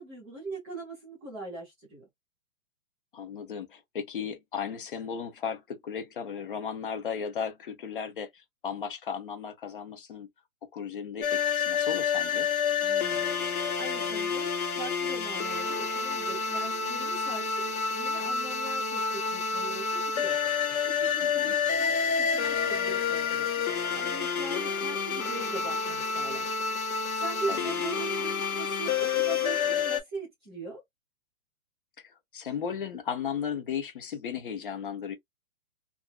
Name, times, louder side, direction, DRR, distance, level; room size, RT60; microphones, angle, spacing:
voice 1, 0.0-2.1 12.8-14.5 14.7-17.6 17.9-23.7 23.9-26.5 27.2-30.8, right 2 dB, 10° right, 0.6 m, -41 dB
voice 2, 3.1-10.3 10.7-12.5 21.2-21.5 27.5-27.7 32.0-35.1, left 7 dB, 40° left, 0.7 m, -35 dB
sound 1, 11.2-30.0, left 6 dB, 85° left, 1.1 m, -29 dB
2.8 x 2.5 x 2.3 m
hypercardioid pair, 180°, 42 cm